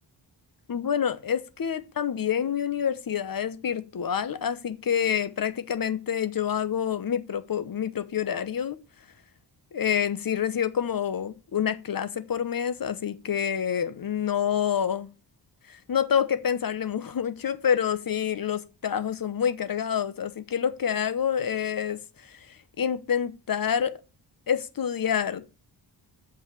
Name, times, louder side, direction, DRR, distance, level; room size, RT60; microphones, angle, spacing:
voice 1, 0.7-8.8 9.7-15.1 15.7-23.9 24.5-25.4, left 8 dB, 50° left, 0.9 m, -27 dB
7.2 x 5.6 x 7.0 m
wide cardioid pair, 165°, 44 cm